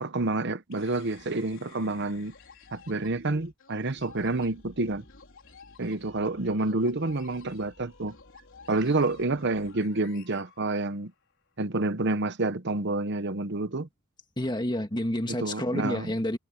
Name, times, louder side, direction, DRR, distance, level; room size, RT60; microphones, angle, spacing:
voice 1, 0.0-2.3 2.7-5.0 5.8-8.2 8.7-11.1 11.6-13.9 15.3-16.1, right 2 dB, 55° right, 1.0 m, -28 dB
sound 1, 0.7-11.3, left 4 dB, 60° left, 4.9 m, -53 dB
voice 2, 14.4-16.4, left 1 dB, 20° left, 2.0 m, -29 dB
head